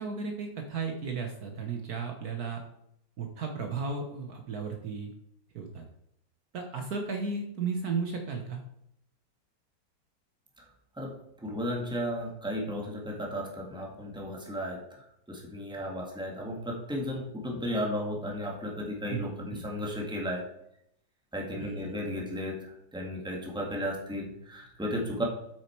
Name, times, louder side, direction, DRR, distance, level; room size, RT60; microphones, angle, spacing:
voice 1, 0.0-2.6 3.2-5.1 5.5-5.8 6.5-8.6 19.1-19.6 21.5-21.9, right 4 dB, 60° right, 3 dB, 1.3 m, -34 dB
voice 2, 11.0-20.5 21.3-25.2, equal, 5° right, -1 dB, 1.6 m, -34 dB
8.3 x 6.5 x 4.5 m, 0.76 s
omnidirectional pair, 2.0 m